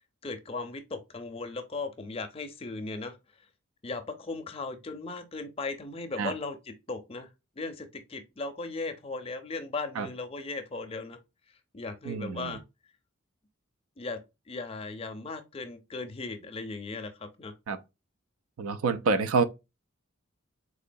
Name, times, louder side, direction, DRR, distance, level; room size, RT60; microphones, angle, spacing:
voice 1, 0.2-3.2 3.8-7.3 7.6-11.2 11.7-12.6 14.0-14.2 14.5-17.5, left 3 dB, 30° left, 0.5 m, -37 dB
voice 2, 12.1-12.6 17.7-17.8 18.6-19.4, right 4 dB, 85° right, 0.4 m, -27 dB
3.8 x 2.9 x 2.5 m
head